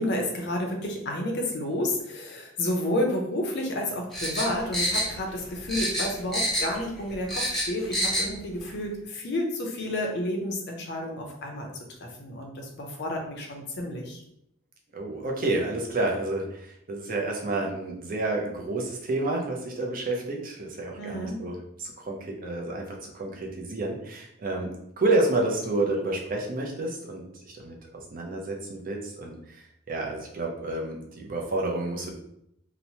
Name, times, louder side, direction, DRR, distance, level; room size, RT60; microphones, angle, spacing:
voice 1, 0.0-11.7 12.0-14.2 21.0-21.4, left 1 dB, 60° left, 1 dB, 0.6 m, -30 dB
sound 1, 4.1-5.4 5.7-6.8 7.1-8.3 8.6-8.7, equal, ahead, 0.6 m, -27 dB
voice 2, 14.9-22.9 23.1-24.7 25.0-27.7 28.1-29.6 29.9-32.1, right 2 dB, 45° right, 0 dB, 0.5 m, -29 dB
2.9 x 2.1 x 2.7 m, 0.76 s
head